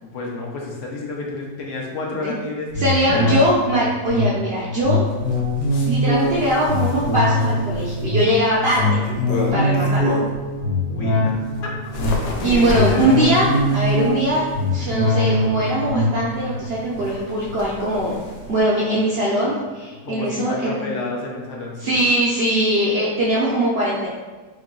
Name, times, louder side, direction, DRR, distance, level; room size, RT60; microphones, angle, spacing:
voice 1, 0.0-2.7 3.0-3.4 10.9-11.7 12.4-13.2 20.0-22.0, left 2 dB, 65° left, -2 dB, 0.8 m, -30 dB
sound 1, 2.7-18.5 18.9-19.0, left 1 dB, 50° left, 1.3 m, -23 dB
voice 2, 2.8-5.1 5.8-9.0 9.5-10.1 12.4-13.5 13.7-18.1 18.5-20.8 21.8-24.1, right 1 dB, 85° right, -6 dB, 0.5 m, -21 dB
Bird, 5.1-10.5 10.9-18.6, left 2 dB, 90° left, 1.2 m, -33 dB
3.1 x 2.6 x 3.7 m, 1.3 s
omnidirectional pair, 1.7 m